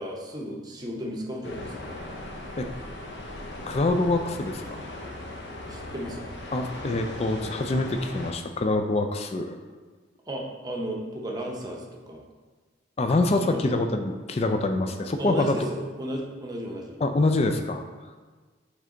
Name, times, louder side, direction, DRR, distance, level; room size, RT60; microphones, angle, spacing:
voice 1, 0.0-1.9 5.7-6.3 10.3-12.3 13.4-13.7 15.2-17.0, equal, 20° right, 0 dB, 0.7 m, -34 dB
sound 1, 1.4-8.3, left 1 dB, 60° left, 0.7 m, -38 dB
voice 2, 3.7-4.8 6.5-9.6 13.0-15.6 17.0-17.8, left 2 dB, 30° left, 6 dB, 0.3 m, -25 dB
7.9 x 3.3 x 3.7 m, 1.4 s
head